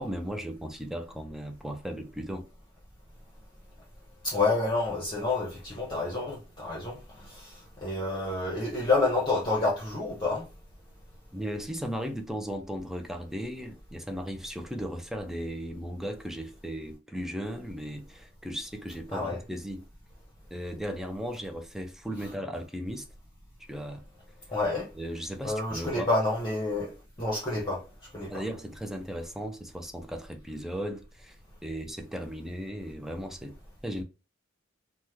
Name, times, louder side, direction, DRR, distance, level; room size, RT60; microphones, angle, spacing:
voice 1, 0.0-2.5 11.3-19.8 20.5-23.1 23.7-24.0 24.9-26.1 28.3-31.4 31.6-33.6 33.8-34.0, equal, ahead, 0.4 m, -36 dB
voice 2, 4.2-10.5 19.1-19.4 24.5-24.9 25.4-26.9 27.2-27.8 28.1-28.3, left 2 dB, 25° left, 0.8 m, -29 dB
3.0 x 2.2 x 3.3 m
head